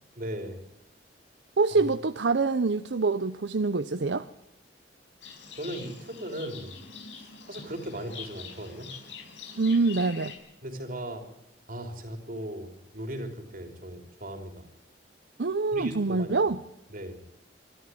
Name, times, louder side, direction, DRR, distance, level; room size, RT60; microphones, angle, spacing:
voice 1, 0.2-0.6 5.6-6.8 7.1-8.9 10.6-11.2 11.7-14.7 15.7-16.5 16.9-17.2, right 1 dB, 50° right, 3.6 m, -38 dB
voice 2, 1.6-4.3 9.6-10.3 15.4-16.6, right 3 dB, 75° right, 0.7 m, -25 dB
Livestock farm animals working animals, 5.2-10.3, left 6 dB, 90° left, 6.0 m, -44 dB
24.5 x 13.0 x 9.3 m
head